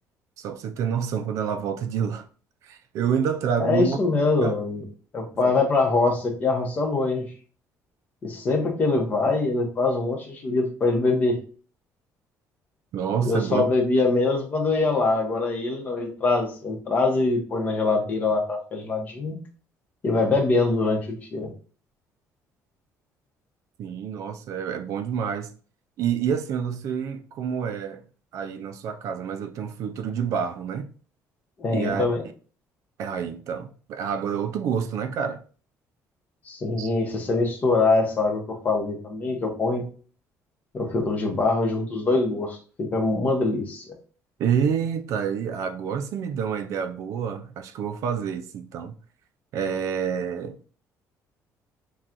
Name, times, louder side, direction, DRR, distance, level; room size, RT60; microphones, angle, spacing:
voice 1, 0.4-2.3 2.6-4.0 4.4-4.5 5.4-5.5 12.9-13.7 23.8-25.5 26.0-28.0 28.3-30.9 31.7-32.0 33.0-35.4 36.8-36.9 44.4-48.9 49.5-50.7, right 7 dB, 55° right, 0.4 m, -28 dB
voice 2, 3.6-4.8 5.1-7.3 8.2-11.4 13.2-19.4 20.0-21.5 31.6-32.2 36.5-39.8 40.7-43.9, left 3 dB, 25° left, 0.8 m, -23 dB
5.7 x 2.3 x 2.5 m
cardioid pair, 175°, 6 cm